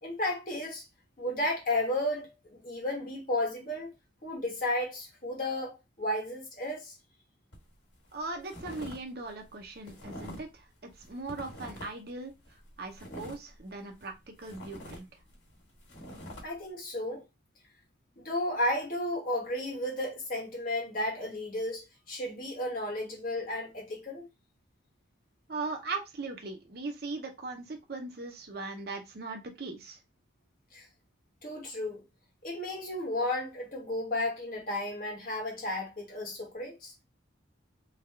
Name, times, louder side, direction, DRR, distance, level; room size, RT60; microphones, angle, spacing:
voice 1, 0.0-0.8 1.2-3.9 4.2-6.9 16.4-17.2 18.2-24.2 30.7-30.8 31.4-32.0 32.4-36.9, left 1 dB, 45° left, 1.3 m, -33 dB
sound 1, 7.5-7.7 8.1-9.0 9.3-10.5 10.9-12.1 12.4-14.1 14.4-16.4, equal, 65° left, 1.7 m, -45 dB
voice 2, 8.1-12.3 12.8-15.1 25.5-30.0, right 3 dB, 55° right, 0.7 m, -39 dB
3.4 x 2.3 x 3.3 m
head